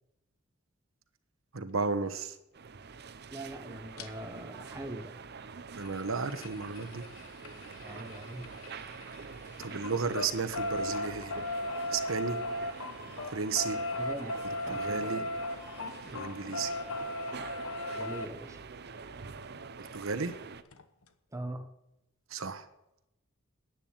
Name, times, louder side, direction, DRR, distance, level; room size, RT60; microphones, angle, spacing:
voice 1, 1.5-2.4 5.8-7.0 9.6-11.3 11.9-12.4 13.3-13.8 14.7-15.2 16.1-16.7 19.8-20.3 22.3-22.7, right 4 dB, 70° right, 10 dB, 1.1 m, -33 dB
sound 1, 2.5-20.6, right 5 dB, 50° right, 0.7 m, -46 dB
voice 2, 3.3-5.1 7.8-8.5 14.0-14.4 14.7-15.3 16.0-16.2 18.0-18.6 21.3-21.7, right 1 dB, 15° right, 7 dB, 0.9 m, -42 dB
sound 2, 4.0-4.1 5.7-9.2 9.5-18.3 19.9-20.0 20.3-20.4 20.7-20.8, left 1 dB, 90° left, 1.1 m, -37 dB
sound 3, 11.7-11.8 13.0-13.1 14.3-14.4 15.6-15.8 16.9-17.0, left 5 dB, 30° left, 6.1 m, -54 dB
10.5 x 9.1 x 8.7 m, 0.88 s
head